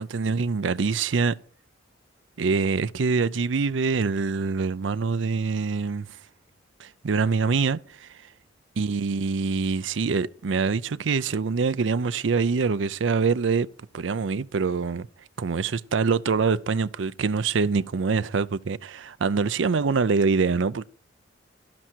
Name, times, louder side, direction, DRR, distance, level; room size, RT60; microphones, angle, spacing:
voice 1, 0.0-1.3 2.4-6.2 6.8-8.2 8.8-13.7 13.9-15.1 15.4-20.8, right 4 dB, 85° right, 0.5 m, -25 dB
12.0 x 11.5 x 4.5 m
head